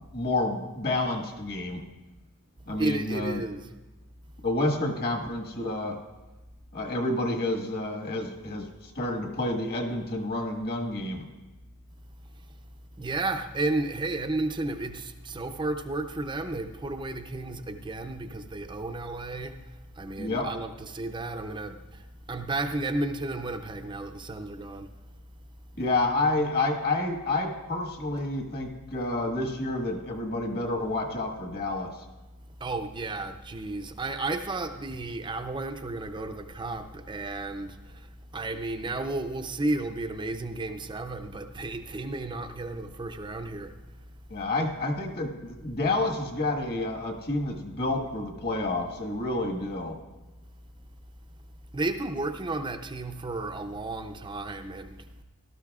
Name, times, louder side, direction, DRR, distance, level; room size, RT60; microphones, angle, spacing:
voice 1, 0.0-1.8 2.7-3.4 4.4-6.0 6.7-11.3 20.2-20.5 25.8-32.0 44.3-50.0, left 2 dB, 45° left, 1.6 m, -29 dB
voice 2, 2.8-3.6 12.3-12.5 13.0-25.7 32.6-44.1 51.7-55.2, right 2 dB, 20° right, 0.5 m, -33 dB
18.0 x 12.5 x 2.4 m
head